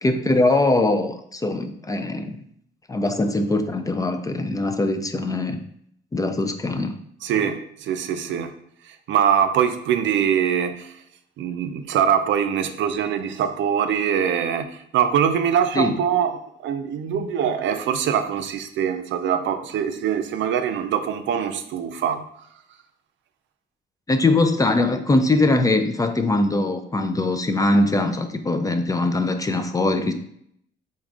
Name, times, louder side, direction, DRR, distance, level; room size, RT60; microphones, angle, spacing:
voice 1, 0.0-2.4 2.9-5.6 6.1-7.0 15.8-16.0 24.1-30.1, left 2 dB, 20° left, 7 dB, 0.3 m, -21 dB
voice 2, 7.2-8.5 8.9-10.9 11.4-22.2, right 8 dB, 70° right, 8 dB, 0.4 m, -23 dB
4.1 x 3.7 x 2.4 m, 0.69 s
cardioid pair, 90°, 20 cm